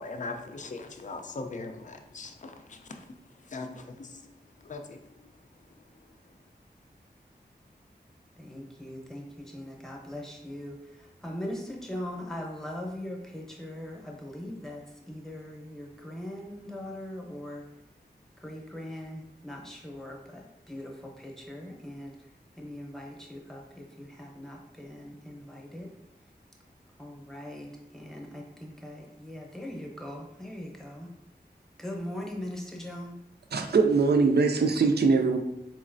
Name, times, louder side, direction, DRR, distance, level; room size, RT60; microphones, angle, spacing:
voice 1, 0.0-5.3 5.8-5.9, left 3 dB, 45° left, 5 dB, 0.4 m, -41 dB
voice 2, 8.4-17.6 18.4-22.1 22.6-25.9 27.0-31.1 31.8-33.2, left 1 dB, ahead, -1 dB, 0.8 m, -40 dB
voice 3, 33.5-35.4, right 4 dB, 70° right, 5 dB, 0.4 m, -22 dB
4.0 x 3.1 x 2.5 m, 0.87 s
wide cardioid pair, 60°, 18 cm